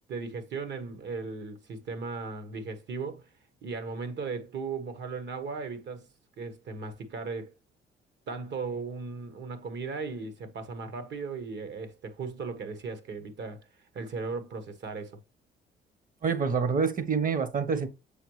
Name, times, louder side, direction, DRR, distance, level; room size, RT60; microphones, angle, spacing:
voice 1, 0.1-3.3 3.6-6.1 6.4-7.5 8.3-13.6 13.9-15.2, right 4 dB, 65° right, 1.3 m, -37 dB
voice 2, 16.2-17.9, right 5 dB, 45° right, 1.1 m, -27 dB
7.0 x 4.6 x 3.1 m
cardioid pair, 90°, 20 cm